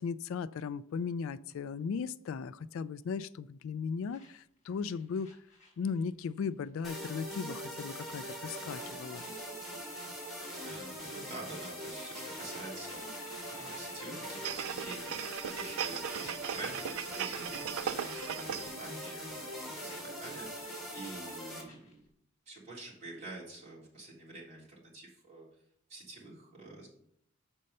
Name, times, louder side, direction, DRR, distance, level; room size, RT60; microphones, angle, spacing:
voice 1, 0.0-5.4 5.8-9.3, left 5 dB, 65° left, 16 dB, 0.3 m, -37 dB
sound 1, 4.1-6.4 6.6-6.9 7.2-22.1, left 2 dB, 35° left, 2.9 m, -58 dB
sound 2, 6.8-21.6, equal, ahead, 2.5 m, -42 dB
voice 2, 10.6-22.0 22.4-25.5 25.9-26.9, right 2 dB, 30° right, -5 dB, 3.4 m, -47 dB
sound 3, 14.4-18.8 19.2-19.3, right 9 dB, 75° right, 0.3 m, -38 dB
7.6 x 5.3 x 5.4 m, 0.67 s
head